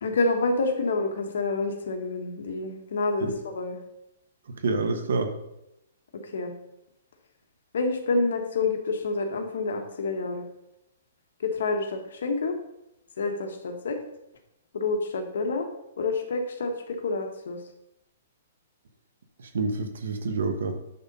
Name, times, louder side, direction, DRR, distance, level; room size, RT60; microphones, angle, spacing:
voice 1, 0.0-3.8 6.1-6.5 7.7-10.4 11.4-12.6 13.2-14.0 14.7-15.7 16.0-17.6, left 3 dB, 75° left, 4 dB, 1.3 m, -28 dB
voice 2, 4.6-5.3 19.5-20.7, right 3 dB, 80° right, 6 dB, 1.1 m, -27 dB
9.4 x 3.9 x 5.4 m, 0.86 s
hypercardioid pair, 165°, 0 cm